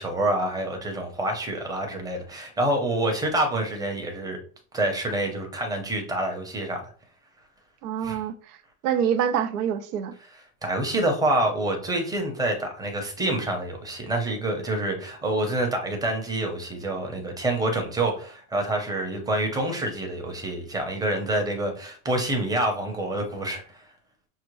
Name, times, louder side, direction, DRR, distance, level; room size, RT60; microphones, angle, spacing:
voice 1, 0.0-4.4 4.7-6.9 8.0-8.2 10.6-23.8, right 1 dB, 10° right, 0.8 m, -27 dB
voice 2, 7.8-8.6 8.8-10.1, right 8 dB, 80° right, 0.8 m, -26 dB
6.4 x 2.1 x 3.1 m
supercardioid pair, 150°, 45 cm